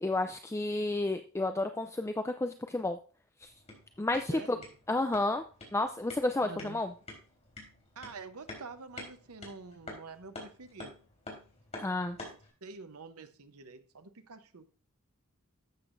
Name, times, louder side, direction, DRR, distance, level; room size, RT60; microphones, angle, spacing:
voice 1, 0.0-3.0 3.4-3.5 4.0-4.6 4.9-5.4 5.7-6.9 11.8-12.2, left 2 dB, 15° left, 0.4 m, -31 dB
sound 1, 3.4-12.5, left 2 dB, 30° left, 3.7 m, -49 dB
voice 2, 4.3-4.7 6.4-6.8 8.0-10.9 12.2-14.7, right 4 dB, 85° right, 0.9 m, -47 dB
12.0 x 8.0 x 2.6 m
head